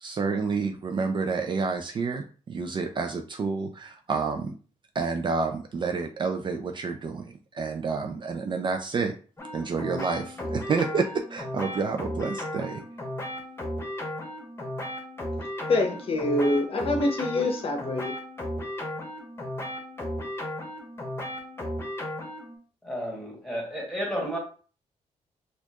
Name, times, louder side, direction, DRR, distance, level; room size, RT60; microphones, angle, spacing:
voice 1, 0.0-4.5 4.9-9.1 9.5-12.8, right 4 dB, 40° right, 4 dB, 0.4 m, -29 dB
sound 1, 9.4-22.6, left 1 dB, 20° left, 0.9 m, -35 dB
voice 2, 15.7-18.1, left 2 dB, 45° left, 3 dB, 0.7 m, -25 dB
voice 3, 22.8-24.4, equal, ahead, -1 dB, 1.5 m, -32 dB
4.2 x 2.4 x 2.9 m, 0.39 s
cardioid pair, 100°, 13 cm